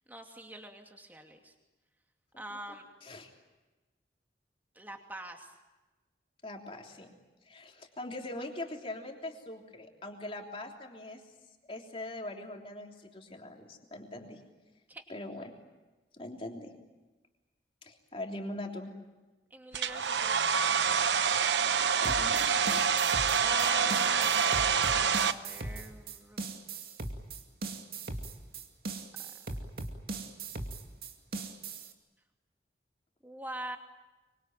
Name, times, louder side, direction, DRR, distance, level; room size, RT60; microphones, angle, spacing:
voice 1, 0.1-1.5 2.4-2.8 4.7-5.5 14.9-15.0 19.5-21.2 22.2-23.1 23.3-26.5 29.2-29.3 33.2-33.8, right 1 dB, 10° right, 3 dB, 2.7 m, -44 dB
voice 2, 6.4-7.1 7.5-11.2 11.7-14.4 15.1-15.5 16.1-16.7 17.8-18.9 22.0-22.3 22.6-22.9, left 1 dB, 30° left, 2 dB, 3.3 m, -42 dB
Domestic sounds home sounds, 19.7-25.3, right 6 dB, 90° right, 1.0 m, -27 dB
sound 1, 22.0-31.9, right 3 dB, 60° right, 2.5 m, -39 dB
24.5 x 24.0 x 9.1 m, 1.1 s
head